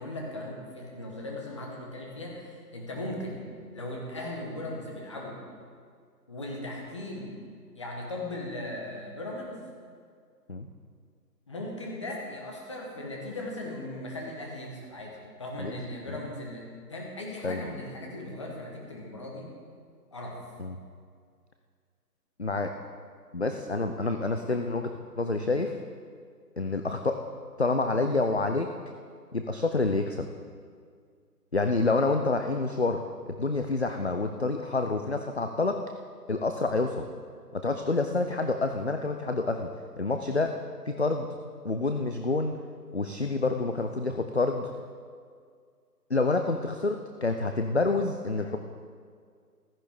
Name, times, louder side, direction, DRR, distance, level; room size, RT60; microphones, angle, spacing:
voice 1, 0.0-3.5 3.7-5.4 6.3-7.4 7.7-9.7 11.5-19.5 20.1-20.4, left 1 dB, 20° left, -1 dB, 1.1 m, -38 dB
voice 2, 17.4-17.7 20.6-20.8 22.4-22.7 23.3-24.9 25.2-25.8 26.6-27.2 27.6-28.7 29.3-30.3 31.5-35.8 36.3-37.1 37.5-39.7 40.0-40.6 40.9-41.3 41.6-42.5 42.9-44.7 46.1-48.6, left 3 dB, 45° left, 6 dB, 0.5 m, -28 dB
15.0 x 13.0 x 3.5 m, 2.1 s
figure-of-eight pair, 160°, 49 cm